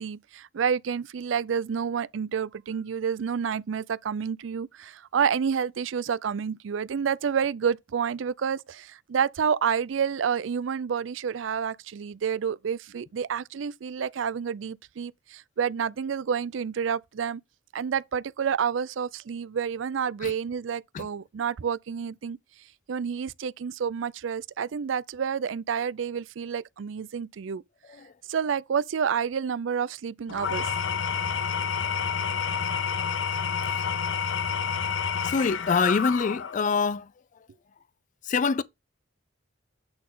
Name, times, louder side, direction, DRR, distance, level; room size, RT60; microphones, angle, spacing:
voice 1, 0.0-17.4 17.7-22.4 22.9-27.6 28.3-30.7, right 7 dB, 85° right, 0.4 m, -29 dB
Engine / Tools, 30.3-36.7, left 6 dB, 85° left, 0.7 m, -29 dB
voice 2, 35.2-37.1 38.2-38.6, left 5 dB, 40° left, 0.4 m, -25 dB
8.6 x 4.0 x 3.8 m
head